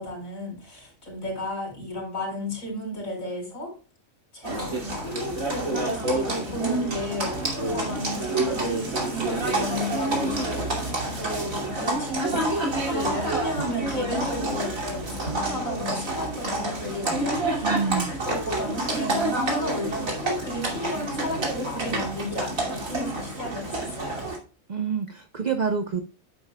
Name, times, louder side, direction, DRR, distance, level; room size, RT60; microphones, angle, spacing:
voice 1, 0.0-3.7 4.3-12.4 12.9-17.7 18.1-24.3, equal, 85° left, -1 dB, 4.9 m, -33 dB
Livestock farm animals working animals, 4.4-24.4, right 2 dB, 80° right, 3.2 m, -28 dB
voice 2, 17.6-18.2 24.7-26.0, right 6 dB, 40° right, 7 dB, 0.8 m, -27 dB
10.5 x 9.3 x 2.3 m, 0.35 s
omnidirectional pair, 1.4 m